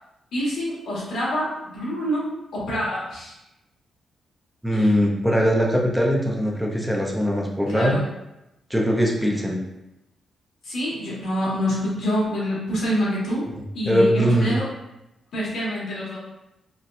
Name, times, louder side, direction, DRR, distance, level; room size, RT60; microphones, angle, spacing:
voice 1, 0.3-3.3 4.7-4.9 7.7-8.0 10.6-13.4 13.7-14.6 15.3-16.2, equal, 85° left, -7 dB, 1.5 m, -26 dB
voice 2, 4.6-8.0 8.7-9.6 13.9-14.5, equal, ahead, -1 dB, 0.5 m, -21 dB
4.0 x 2.2 x 2.6 m, 0.91 s
wide cardioid pair, 145°, 0 cm